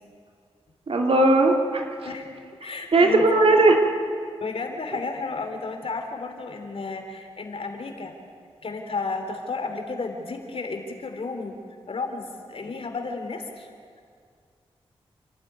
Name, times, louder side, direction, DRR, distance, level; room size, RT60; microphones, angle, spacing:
voice 1, 0.9-1.8 2.9-3.9, right 2 dB, 60° right, 1 dB, 3.1 m, -18 dB
voice 2, 2.6-3.3 4.4-8.1 8.6-11.6 11.9-13.7, left 3 dB, 60° left, 5 dB, 3.3 m, -32 dB
28.5 x 12.5 x 9.6 m, 2.2 s
cardioid pair, 50°, 11 cm